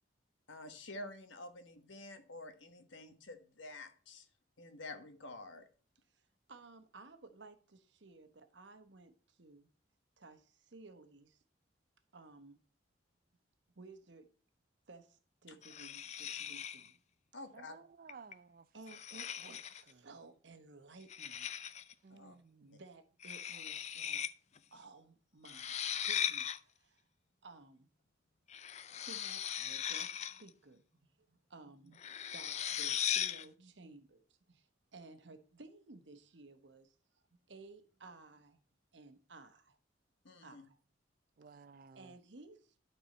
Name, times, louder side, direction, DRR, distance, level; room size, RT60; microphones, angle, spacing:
voice 1, 0.5-4.3 4.6-5.6 15.5-15.6 17.3-17.8 22.1-22.3 40.2-40.6, left 2 dB, 85° left, 1.4 m, -49 dB
voice 2, 6.5-9.7 10.2-11.4 12.1-12.6 13.8-14.3 14.9-17.0 18.7-21.5 22.2-22.3 22.6-24.3 24.7-25.8 26.0-27.0 27.4-27.9 28.9-32.0 32.3-34.2 34.5-37.2 37.5-38.6 38.9-39.8 40.4-40.8 41.5-41.6 41.9-42.8, right 3 dB, 70° right, 1.1 m, -56 dB
sound 1, 15.6-16.9 18.1-18.3 18.9-19.9 21.1-21.9 23.2-24.3 24.6-24.7 25.4-26.6 28.5-30.5 32.0-33.4, left 9 dB, 35° left, 0.4 m, -38 dB
voice 3, 17.5-18.7 19.9-20.1 22.0-22.8 41.4-42.2, right 5 dB, 50° right, 0.5 m, -56 dB
12.0 x 4.5 x 4.1 m
head